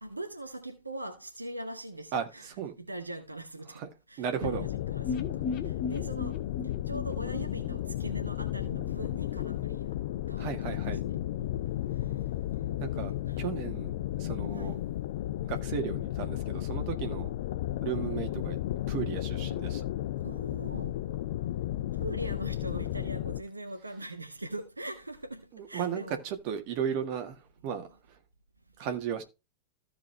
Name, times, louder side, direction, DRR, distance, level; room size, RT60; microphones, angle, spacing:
voice 1, 0.0-3.8 4.1-6.4 6.9-10.0 10.3-11.7 13.3-13.4 14.5-14.8 20.2-20.9 22.0-26.2, right 1 dB, 80° right, 0.8 m, -42 dB
voice 2, 2.1-2.7 3.7-3.9 4.2-4.7 10.4-11.0 12.8-13.1 13.4-13.9 14.2-14.8 15.4-17.3 17.8-18.6 18.9-19.8 25.5-28.2 28.8-29.2, right 8 dB, 45° right, 1.6 m, -35 dB
sound 1, 4.4-23.4, left 13 dB, 55° left, 0.4 m, -33 dB
sound 2, 5.0-8.9 9.2-9.3 9.6-9.7, left 5 dB, 35° left, 1.5 m, -37 dB
15.0 x 5.0 x 3.2 m
figure-of-eight pair, 90°, 0 cm